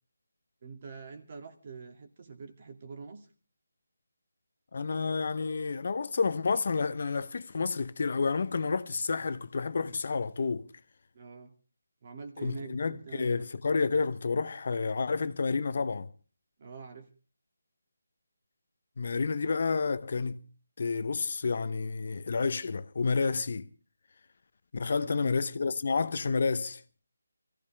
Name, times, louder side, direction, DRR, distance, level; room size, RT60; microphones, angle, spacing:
voice 1, 0.6-3.3 11.1-11.5 12.0-13.5 16.6-17.1 25.0-25.4, right 5 dB, 40° right, 2.4 m, -45 dB
voice 2, 4.7-10.7 12.4-16.1 19.0-20.4 20.8-23.7 24.7-26.8, left 4 dB, 55° left, 0.8 m, -30 dB
24.0 x 15.5 x 3.4 m
figure-of-eight pair, 160°, 0 cm